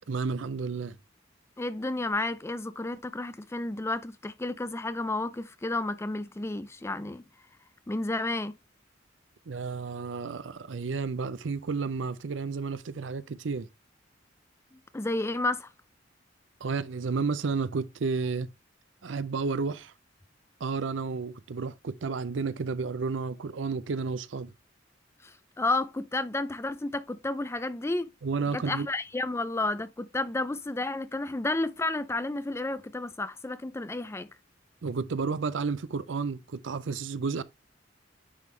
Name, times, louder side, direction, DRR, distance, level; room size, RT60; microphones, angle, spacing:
voice 1, 0.1-1.0 9.5-13.7 16.6-18.5 19.0-19.9 20.6-24.5 28.2-28.9 34.8-37.4, right 4 dB, 70° right, 0.5 m, -31 dB
voice 2, 1.6-7.2 7.9-8.5 14.7-15.7 25.2-28.1 28.5-34.3, left 2 dB, 15° left, 0.4 m, -31 dB
9.9 x 3.6 x 3.2 m
head